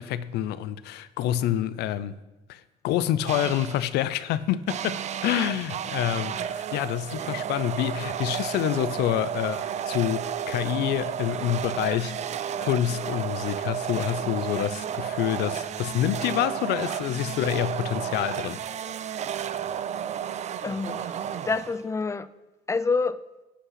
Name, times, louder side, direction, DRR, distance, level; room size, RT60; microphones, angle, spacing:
voice 1, 0.0-2.2 2.5-12.2 12.6-18.6, left 12 dB, 80° left, 0.5 m, -27 dB
sound 1, 3.3-3.9 4.7-22.0, right 9 dB, 45° right, 0.4 m, -32 dB
voice 2, 20.6-21.2 21.4-22.3 22.7-23.2, left 4 dB, 15° left, 0.4 m, -27 dB
9.9 x 5.6 x 5.7 m
cardioid pair, 110°, 17 cm